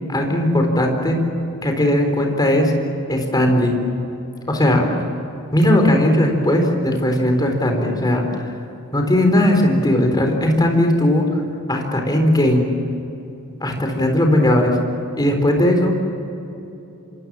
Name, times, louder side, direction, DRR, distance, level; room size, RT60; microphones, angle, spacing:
voice 1, 0.1-1.2 1.6-2.7 3.1-3.8 4.5-4.9 5.5-8.5 8.9-11.3 11.7-12.7 13.6-14.8 15.2-16.0, left 1 dB, 20° left, 3 dB, 4.0 m, -17 dB
26.5 x 26.0 x 7.5 m, 2.9 s
head